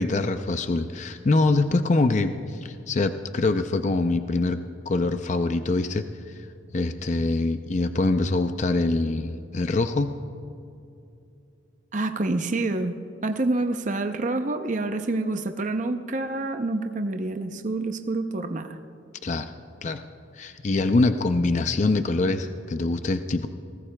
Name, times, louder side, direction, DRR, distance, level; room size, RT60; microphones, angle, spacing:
voice 1, 0.0-6.3 6.7-10.1 19.2-19.5 19.8-20.0 20.4-23.5, left 2 dB, 35° left, 8 dB, 0.4 m, -24 dB
voice 2, 11.9-18.8, right 2 dB, 40° right, 7 dB, 0.6 m, -27 dB
23.5 x 19.0 x 2.3 m, 2.6 s
head